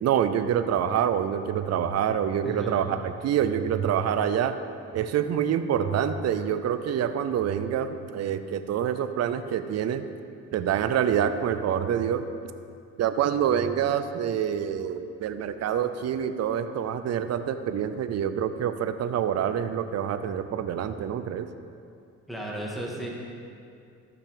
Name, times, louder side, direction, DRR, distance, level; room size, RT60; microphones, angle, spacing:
voice 1, 0.0-4.6 4.9-10.0 10.5-12.3 13.0-21.5, right 9 dB, 55° right, 10 dB, 0.6 m, -26 dB
voice 2, 2.4-2.9 22.3-23.1, right 1 dB, ahead, -4 dB, 2.2 m, -35 dB
13.5 x 6.0 x 5.1 m, 2.4 s
cardioid pair, 90°, 30 cm